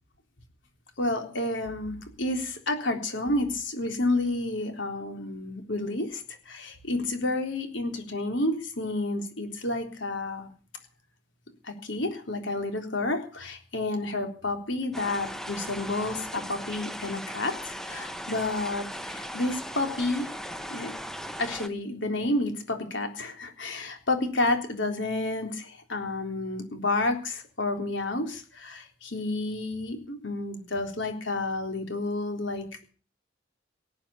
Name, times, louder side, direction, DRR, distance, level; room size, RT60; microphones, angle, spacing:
voice 1, 1.0-10.5 11.6-20.3 20.7-20.9 21.4-32.7, left 2 dB, 75° left, 5 dB, 3.7 m, -30 dB
sound 1, 14.9-21.7, equal, ahead, 1.0 m, -38 dB
19.0 x 9.0 x 8.5 m, 0.40 s
head